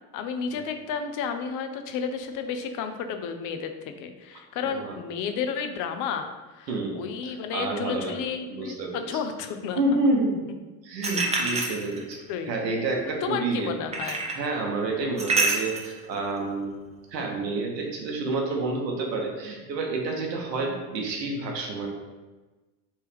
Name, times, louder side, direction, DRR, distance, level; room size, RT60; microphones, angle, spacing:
voice 1, 0.1-9.8 11.4-11.8 12.3-12.5 13.2-14.2, left 6 dB, 40° left, 7 dB, 0.5 m, -32 dB
voice 2, 6.7-7.0 7.2-8.1 8.5-9.0 9.8-10.4 10.8-12.2 12.5-13.7 14.0-16.7 17.1-21.9, right 2 dB, 85° right, 1 dB, 0.9 m, -29 dB
sound 1, 11.0-12.2 13.9-14.4 15.2-15.9, right 3 dB, 15° right, 0.4 m, -26 dB
3.1 x 2.9 x 3.3 m, 1.2 s
hypercardioid pair, 75°, 49 cm